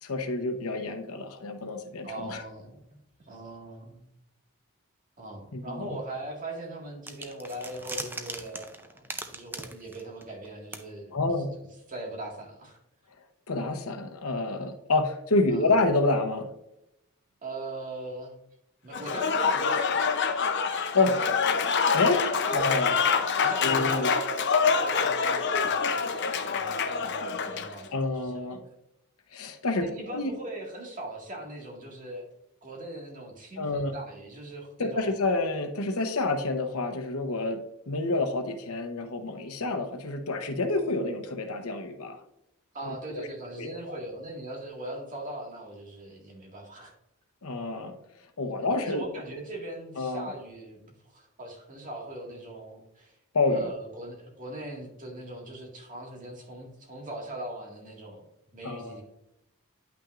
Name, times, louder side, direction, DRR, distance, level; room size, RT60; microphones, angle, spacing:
voice 1, 0.0-2.4 5.5-5.9 11.1-11.5 13.5-16.5 20.9-21.2 21.9-22.2 22.5-23.0 23.6-24.1 27.9-28.7 29.3-30.3 33.6-33.9 34.8-37.6 37.9-42.2 42.8-43.2 43.6-44.0 47.4-47.9 48.4-49.0 50.0-50.3 53.3-53.7 58.6-59.0, left 2 dB, 90° left, 6 dB, 0.9 m, -28 dB
voice 2, 2.0-3.0 3.2-4.1 5.2-11.2 11.9-12.8 15.5-15.7 17.4-18.4 18.8-20.3 20.7-20.9 22.5-22.8 23.4-25.9 26.3-28.6 29.8-32.3 32.6-35.1 42.7-46.9 48.8-53.2 53.5-58.2 58.5-59.0, right 1 dB, 40° right, -1 dB, 1.9 m, -40 dB
sound 1, 7.1-10.5 10.7-10.8, right 2 dB, 10° right, 0.5 m, -39 dB
Applause / Crowd, 18.9-27.8, left 5 dB, 55° left, 0.7 m, -26 dB
10.0 x 5.9 x 2.5 m, 0.84 s
head